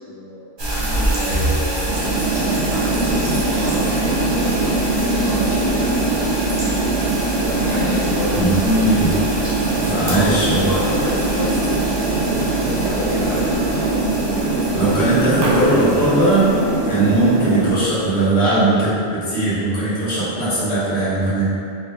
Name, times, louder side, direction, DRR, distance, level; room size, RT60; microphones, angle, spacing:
voice 1, 0.1-2.0 2.7-6.1 7.6-8.9 10.0-11.8 12.5-14.1, left 1 dB, 30° left, -7 dB, 0.3 m, -29 dB
sound 1, 0.6-18.0, right 1 dB, 30° right, 0.6 m, -26 dB
sound 2, 1.9-17.7, right 2 dB, 65° right, 0.8 m, -22 dB
voice 2, 8.3-9.1 9.9-10.7 14.7-16.5 16.8-21.5, right 1 dB, 55° left, -11 dB, 1.3 m, -19 dB
2.8 x 2.7 x 3.4 m, 2.5 s
omnidirectional pair, 1.2 m